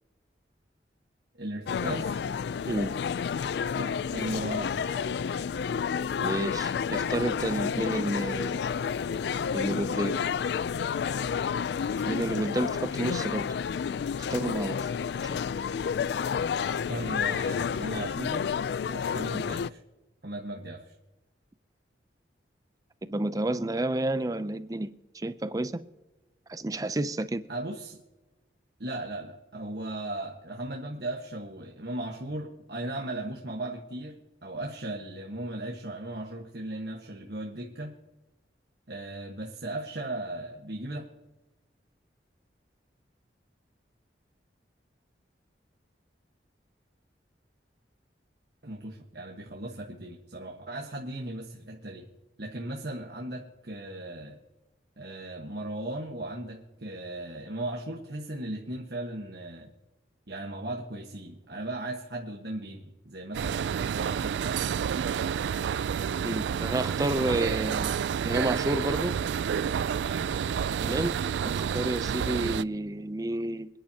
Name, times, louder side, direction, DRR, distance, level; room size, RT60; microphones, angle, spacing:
voice 1, 1.3-2.2 3.7-5.2 16.6-18.5 18.9-19.8 20.2-20.9 27.5-28.0 28.8-38.0 38.9-41.1 48.6-52.1 52.4-54.4 55.0-59.7 60.3-65.0, right 1 dB, 60° right, 1.3 m, -37 dB
sound 1, 1.7-19.7, left 6 dB, 65° left, 0.3 m, -30 dB
voice 2, 2.7-3.0 6.2-8.6 9.5-10.2 12.1-13.5 14.3-14.8 23.0-25.8 26.5-27.4 66.2-67.9 68.2-69.1 70.8-71.2 71.4-73.7, right 1 dB, 20° right, 0.4 m, -30 dB
sound 2, 63.3-72.6, right 7 dB, 80° right, 0.3 m, -29 dB
26.5 x 10.5 x 2.8 m
head